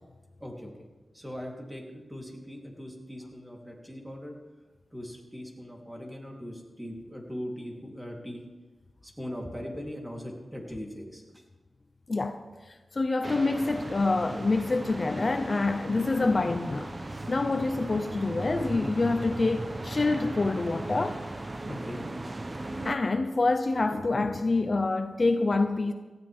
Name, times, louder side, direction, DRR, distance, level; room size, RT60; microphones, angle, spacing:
voice 1, 1.1-4.4 4.9-8.4 9.0-11.4 15.9-16.5 21.7-22.0, equal, 10° right, -1 dB, 3.8 m, -40 dB
voice 2, 12.1-12.4 12.7-16.9 17.3-21.2 22.8-25.9, left 3 dB, 45° left, 8 dB, 0.8 m, -26 dB
sound 1, 13.2-23.0, right 2 dB, 35° right, 1.0 m, -37 dB
18.5 x 14.5 x 3.7 m, 1.3 s
cardioid pair, 65°, 0 cm